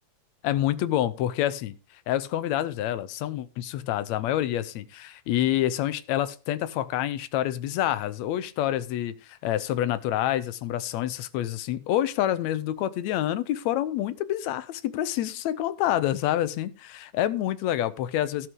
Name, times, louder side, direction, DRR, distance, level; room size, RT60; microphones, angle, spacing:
voice 1, 0.4-1.7 2.1-18.5, left 12 dB, 75° left, 1.8 m, -27 dB
17.5 x 6.0 x 3.7 m
omnidirectional pair, 3.5 m